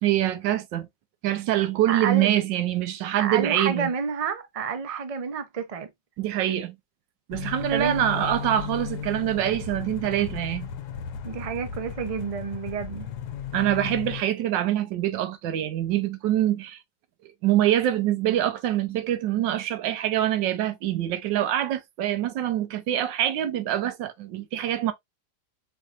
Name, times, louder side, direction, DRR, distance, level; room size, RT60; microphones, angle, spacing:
voice 1, 0.0-0.9 1.2-3.9 6.2-6.8 7.3-10.7 13.5-16.8 17.4-24.9, right 12 dB, 90° right, 1.4 m, -25 dB
voice 2, 1.9-2.3 3.2-5.9 7.7-7.9 11.2-13.1, right 6 dB, 55° right, 0.4 m, -29 dB
sound 1, 7.3-14.2, left 8 dB, 70° left, 1.2 m, -35 dB
4.7 x 4.4 x 2.5 m
omnidirectional pair, 1.9 m